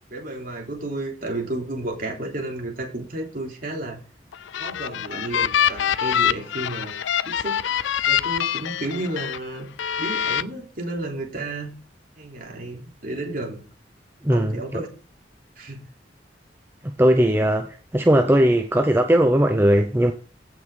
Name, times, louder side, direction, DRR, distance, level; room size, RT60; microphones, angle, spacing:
voice 1, 0.1-4.0 4.5-6.9 7.3-7.6 8.1-9.7 10.0-11.7 12.1-13.6 14.3-14.9 15.6-15.8, right 2 dB, 50° right, 3.3 m, -32 dB
sound 1, 4.3-9.4 9.8-10.4, left 9 dB, 75° left, 0.5 m, -24 dB
voice 2, 14.2-14.8 17.0-17.7 17.9-20.1, right 1 dB, 10° right, 0.7 m, -18 dB
15.5 x 6.1 x 3.8 m
head